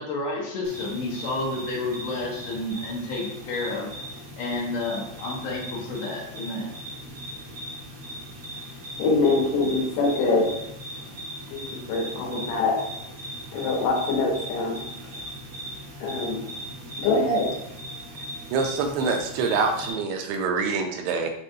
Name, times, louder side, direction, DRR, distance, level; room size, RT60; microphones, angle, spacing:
voice 1, 0.0-3.9 4.4-6.7, left 2 dB, 75° left, -2 dB, 2.7 m, -30 dB
sound 1, 0.6-19.9, equal, 65° right, 1.3 m, -38 dB
voice 2, 9.0-10.6 11.5-12.8 13.5-15.2 16.0-16.4 17.0-17.5, left 3 dB, 90° left, 0 dB, 3.1 m, -24 dB
voice 3, 18.5-21.3, right 4 dB, 85° right, 4 dB, 2.5 m, -25 dB
7.4 x 2.5 x 2.6 m, 0.81 s
omnidirectional pair, 4.8 m